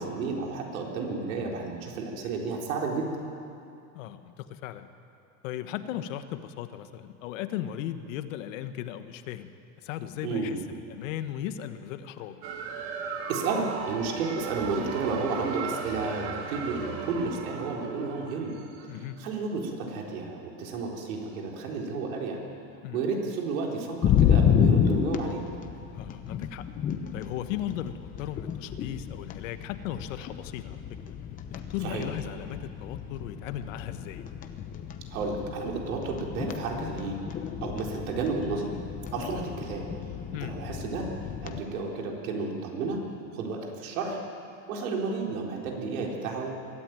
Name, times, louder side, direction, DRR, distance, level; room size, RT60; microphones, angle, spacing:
voice 1, 0.0-3.1 10.2-10.6 13.3-18.6 19.2-22.4 22.9-25.4 31.8-32.1 35.1-37.2 37.6-38.7 39.1-39.9 40.4-41.1 41.4-43.0 43.3-44.2 44.7-46.5, right 4 dB, 85° right, 0 dB, 4.2 m, -32 dB
voice 2, 3.9-4.9 5.4-9.5 9.8-12.4 18.9-19.2 22.8-23.0 25.9-26.7 27.1-30.8 31.5-34.3 40.3-40.6, left 11 dB, 65° left, 10 dB, 1.3 m, -37 dB
sound 1, 12.4-19.0, right 5 dB, 50° right, 2.4 m, -37 dB
sound 2, 24.0-41.6, left 8 dB, 20° left, 0.8 m, -30 dB
22.0 x 13.0 x 9.2 m, 2.6 s
supercardioid pair, 170°, 41 cm